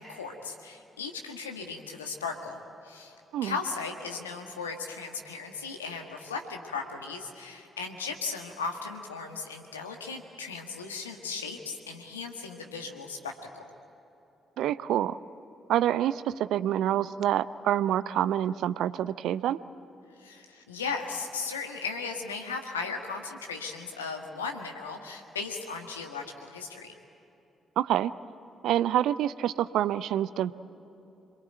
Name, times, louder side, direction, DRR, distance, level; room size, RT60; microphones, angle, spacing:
voice 1, 0.0-3.1 3.4-13.6 20.2-26.9, left 4 dB, 85° left, 3 dB, 1.7 m, -37 dB
voice 2, 14.6-15.2 15.7-19.6 27.8-28.1 28.6-30.5, right 11 dB, 65° right, 16 dB, 0.6 m, -27 dB
26.5 x 23.0 x 9.1 m, 2.9 s
figure-of-eight pair, 40°, 0 cm